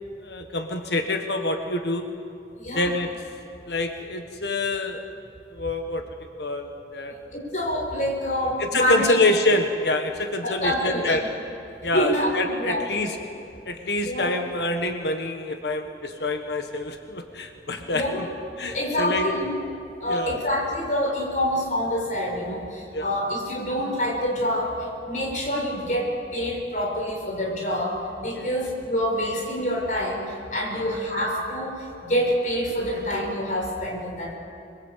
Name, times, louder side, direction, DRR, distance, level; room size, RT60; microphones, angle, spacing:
voice 1, 0.2-2.0 2.7-3.1 3.7-5.0 5.5-6.0 6.4-7.1 8.6-11.2 11.8-13.2 13.7-18.3 18.6-19.3 20.0-20.4 22.9-23.1 28.3-28.5 30.7-30.9, left 2 dB, 70° left, 5 dB, 1.6 m, -26 dB
voice 2, 2.6-2.9 7.3-9.2 10.4-11.2 11.9-13.1 14.0-14.4 17.9-18.3 18.7-19.5 20.0-24.8 25.0-30.2 30.5-34.3, equal, 45° left, 0 dB, 5.4 m, -26 dB
26.0 x 22.0 x 8.3 m, 2.6 s
head